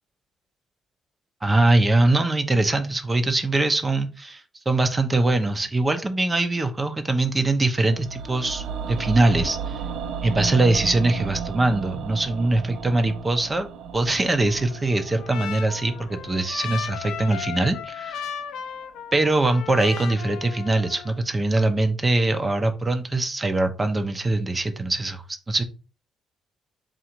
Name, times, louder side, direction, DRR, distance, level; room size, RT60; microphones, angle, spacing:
voice 1, 1.4-9.8 10.2-13.7 13.9-18.3 19.1-25.6, right 2 dB, 25° right, 8 dB, 0.6 m, -22 dB
sound 1, 7.9-18.0 18.3-18.4, right 6 dB, 75° right, 0.4 m, -34 dB
Trumpet, 14.4-21.2, left 8 dB, 90° left, 0.5 m, -36 dB
3.7 x 2.5 x 4.4 m, 0.35 s
cardioid pair, 90°, 0 cm